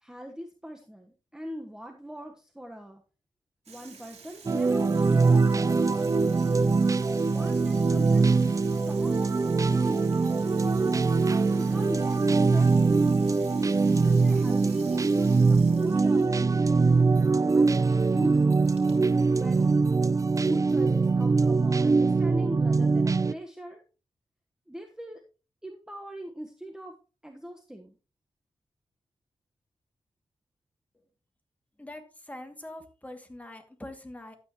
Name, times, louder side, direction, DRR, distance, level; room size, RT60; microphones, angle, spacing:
voice 1, 0.0-3.0 3.7-6.0 7.3-9.1 9.7-10.1 10.6-11.0 11.4-13.0 13.9-16.9 17.5-18.6 19.3-19.8 20.4-23.8 24.7-25.2 25.6-27.0 27.2-27.9, equal, 5° right, 3 dB, 1.3 m, -41 dB
Water tap faucet / Sink (filling or washing), 3.7-21.1, right 5 dB, 85° right, 2.8 m, -51 dB
sound 1, 4.5-23.3, right 4 dB, 30° right, 0.4 m, -23 dB
voice 2, 31.8-34.3, left 1 dB, 15° left, 4 dB, 2.4 m, -43 dB
12.0 x 8.9 x 3.0 m, 0.33 s
cardioid pair, 80°, 11 cm